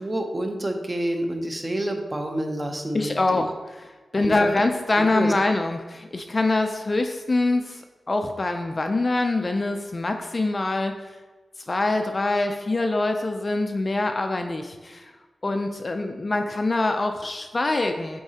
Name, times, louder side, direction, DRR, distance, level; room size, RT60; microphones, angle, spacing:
voice 1, 0.0-3.4 4.2-4.5 5.0-5.3, right 1 dB, 20° right, 3 dB, 0.6 m, -28 dB
voice 2, 2.9-3.8 4.1-10.9 11.7-15.1 15.4-18.2, left 2 dB, 30° left, 6 dB, 0.4 m, -24 dB
7.9 x 4.6 x 2.8 m, 1.3 s
wide cardioid pair, 155°, 0 cm